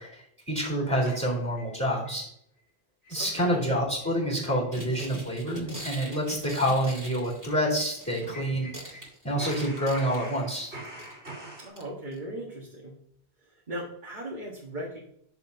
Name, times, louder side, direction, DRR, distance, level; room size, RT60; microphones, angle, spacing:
voice 1, 0.0-2.3 3.1-10.7, equal, 15° left, -4 dB, 3.1 m, -28 dB
sound 1, 1.1-2.2 2.6-2.7 3.0-3.3 3.5-3.6 4.0-4.2 4.5-4.7 5.0-5.1 5.4-9.1 9.4-11.7, right 1 dB, 80° right, 4.0 m, -45 dB
voice 2, 3.1-3.6 11.6-12.9 13.7-15.0, right 1 dB, 45° right, -3 dB, 1.7 m, -38 dB
sound 2, 4.7-8.3 8.6-10.5 11.0-11.3 11.8-11.9 12.1-12.2, equal, 15° right, 1.9 m, -42 dB
11.0 x 6.7 x 2.7 m, 0.69 s
omnidirectional pair, 1.1 m